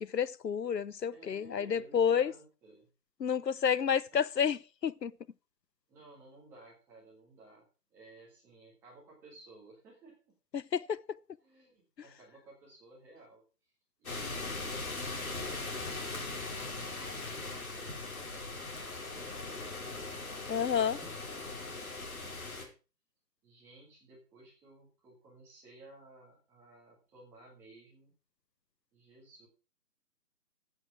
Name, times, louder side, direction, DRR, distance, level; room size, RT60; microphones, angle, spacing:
voice 1, 0.0-2.3 3.2-4.6 4.8-5.1 10.5-11.0 20.5-21.0, left 7 dB, 85° left, 0.9 m, -30 dB
voice 2, 1.1-2.9 4.1-4.3 5.9-10.2 11.4-13.4 14.0-16.0 16.3-16.8 17.2-20.2 20.5-22.7 23.4-28.1 28.9-29.5, right 2 dB, 5° right, 1.7 m, -56 dB
sound 1, 14.0-22.6, left 3 dB, 60° left, 4.6 m, -40 dB
14.0 x 7.9 x 4.9 m
figure-of-eight pair, 165°, 48 cm